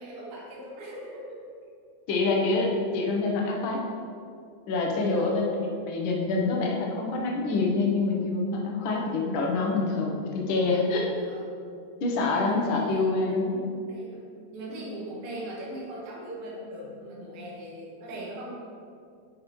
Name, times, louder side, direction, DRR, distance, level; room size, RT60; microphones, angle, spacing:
voice 1, 0.0-1.4 5.0-5.3 8.8-9.0 11.1-11.5 12.5-14.2 14.5-18.5, right 1 dB, 70° right, -6 dB, 2.7 m, -40 dB
voice 2, 2.1-3.8 4.7-5.4 5.8-11.1 12.0-13.5, left 3 dB, 80° left, -1 dB, 1.1 m, -26 dB
10.5 x 5.0 x 3.1 m, 2.4 s
omnidirectional pair, 3.5 m